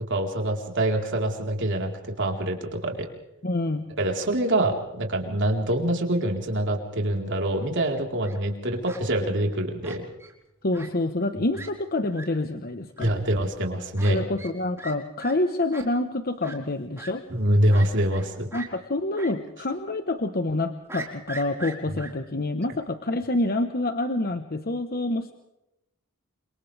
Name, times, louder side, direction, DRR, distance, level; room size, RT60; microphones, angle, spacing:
voice 1, 0.1-3.1 4.0-10.1 13.0-14.2 17.3-18.5, right 1 dB, 60° right, 2 dB, 4.2 m, -25 dB
voice 2, 3.4-3.9 10.6-13.1 14.1-17.2 18.5-25.3, left 2 dB, 45° left, 7 dB, 1.2 m, -27 dB
Fowl, 8.0-8.4 8.8-9.0 9.8-10.3 10.7-10.9 11.2-11.3 11.5-11.7 12.1-12.2 13.0-13.1 14.0-14.1 14.4-14.5 14.8-14.9 15.2-15.3 15.7-15.8 16.4-16.6 17.0-17.1 17.7-18.2 18.5-18.7 19.2-19.3 19.6-19.7 20.9-22.1, right 3 dB, 10° right, 4.8 m, -39 dB
29.5 x 27.0 x 3.5 m, 0.89 s
head